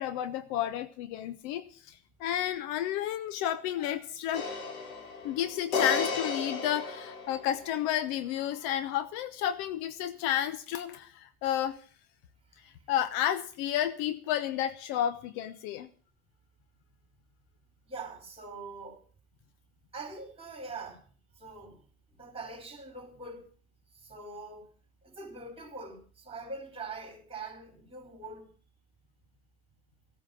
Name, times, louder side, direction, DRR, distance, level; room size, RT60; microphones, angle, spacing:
voice 1, 0.0-4.5 5.2-11.8 12.9-15.9, left 11 dB, 55° left, 1.0 m, -31 dB
sound 1, 4.3-7.7, left 4 dB, 75° left, 3.2 m, -33 dB
voice 2, 12.5-12.9 17.8-19.0 19.9-21.1 21.4-23.4 23.9-24.7 25.0-28.5, right 3 dB, 15° right, 5.0 m, -43 dB
15.5 x 9.0 x 7.2 m
hypercardioid pair, 85°, 44 cm